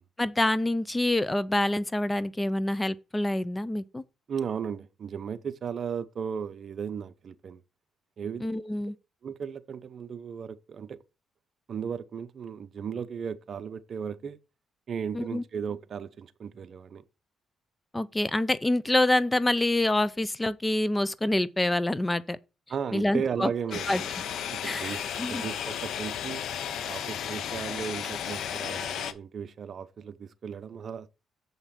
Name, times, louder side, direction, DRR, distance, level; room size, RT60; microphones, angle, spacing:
voice 1, 0.2-4.0 8.4-8.9 15.1-15.4 17.9-22.4 22.9-23.5 23.9-24.0 24.6-25.4, left 1 dB, 15° left, 0.5 m, -26 dB
voice 2, 4.3-7.6 8.2-8.5 9.2-11.0 11.7-14.4 14.9-17.0 22.7-24.1 24.5-26.4 26.8-31.1, right 7 dB, 55° right, 0.7 m, -35 dB
sound 1, 23.7-29.1, left 9 dB, 75° left, 0.7 m, -34 dB
7.2 x 5.5 x 5.8 m
cardioid pair, 90°, 0 cm